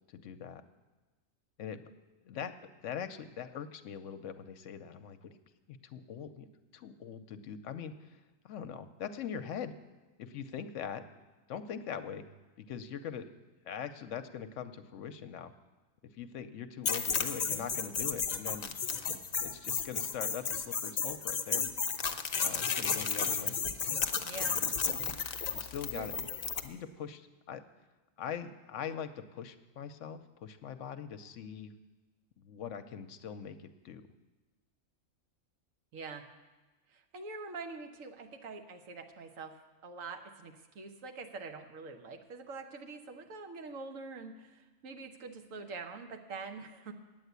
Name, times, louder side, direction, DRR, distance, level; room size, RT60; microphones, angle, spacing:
voice 1, 0.1-0.6 1.6-1.8 2.2-2.5 2.8-5.3 5.7-6.5 6.7-8.2 8.4-9.7 10.2-11.0 11.5-12.3 12.6-13.3 13.7-15.5 16.1-18.8 19.4-21.7 22.4-23.6 24.3-24.7 25.5-26.3 26.6-27.6 28.2-31.7 32.4-33.6 33.8-34.0, left 8 dB, 70° left, 10 dB, 0.9 m, -42 dB
sound 1, 16.9-26.7, left 6 dB, 45° left, 0.5 m, -33 dB
voice 2, 24.2-24.6 25.9-26.1 35.9-36.2 36.9-46.9, right 4 dB, 75° right, 5 dB, 1.3 m, -45 dB
9.3 x 8.2 x 8.0 m, 1.2 s
omnidirectional pair, 1.4 m